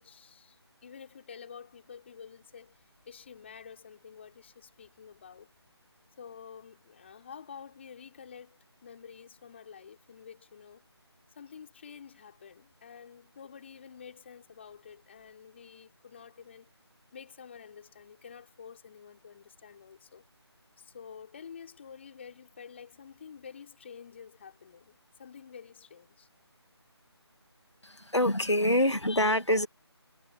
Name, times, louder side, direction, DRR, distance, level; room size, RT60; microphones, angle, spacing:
voice 1, 0.0-5.5 6.2-10.8 11.4-16.7 17.1-20.2 20.8-26.3, left 7 dB, 25° left, 6.0 m, -49 dB
voice 2, 27.8-29.7, left 1 dB, 85° left, 2.1 m, -25 dB
figure-of-eight pair, 160°, 14 cm